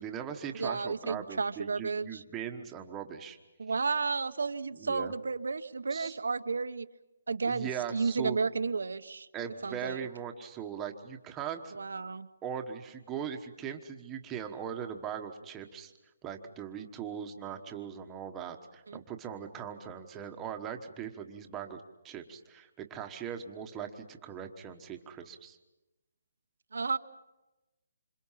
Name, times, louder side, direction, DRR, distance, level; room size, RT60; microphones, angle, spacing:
voice 1, 0.0-3.4 4.8-5.1 5.9-6.1 7.4-8.4 9.3-11.7 12.4-15.9 16.2-25.6, right 8 dB, 10° right, 4 dB, 1.2 m, -40 dB
voice 2, 0.6-2.2 3.6-6.9 7.3-9.3 9.6-10.1 11.7-12.3 18.9-19.0 26.7-27.0, right 4 dB, 90° right, 11 dB, 1.1 m, -32 dB
27.0 x 27.0 x 5.7 m, 1.0 s
hypercardioid pair, 175°, 0 cm